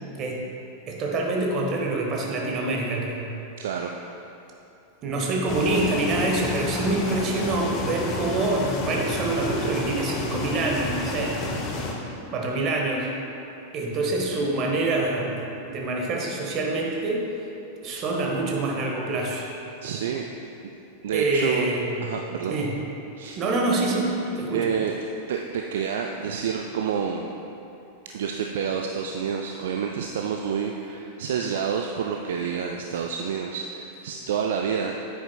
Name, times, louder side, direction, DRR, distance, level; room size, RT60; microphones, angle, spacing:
voice 1, 0.9-3.3 5.0-11.3 12.2-13.1 13.7-17.2 17.8-19.5 21.1-22.1 22.5-22.7 23.4-24.7, right 2 dB, 35° right, 0 dB, 1.3 m, -26 dB
voice 2, 3.6-3.9 19.8-20.3 21.0-21.7 22.0-22.6 23.2-23.4 24.5-24.9 25.3-27.3 28.1-35.0, right 7 dB, 60° right, 2 dB, 0.4 m, -28 dB
sound 1, 5.5-11.9, left 3 dB, 35° left, 1.0 m, -31 dB
9.6 x 8.7 x 2.2 m, 2.9 s
figure-of-eight pair, 90°, 0 cm